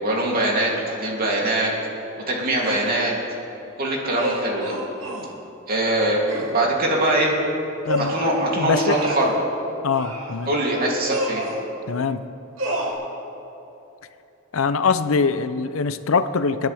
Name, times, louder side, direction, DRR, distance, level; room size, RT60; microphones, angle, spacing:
voice 1, 0.0-1.7 2.3-3.1 3.8-4.8 5.7-7.3 8.1-9.3 10.5-11.4, right 1 dB, 45° right, -3 dB, 3.1 m, -22 dB
sound 1, 2.6-2.9 4.2-5.3 6.3-6.5 7.9-8.4 8.9-9.4 9.9-10.4 11.0-11.6 12.6-12.9, right 1 dB, 75° right, 2.8 m, -29 dB
voice 2, 8.6-9.0 9.8-10.5 11.9-12.2 14.5-16.7, left 5 dB, 85° left, 12 dB, 0.6 m, -22 dB
29.0 x 10.5 x 3.5 m, 2.9 s
head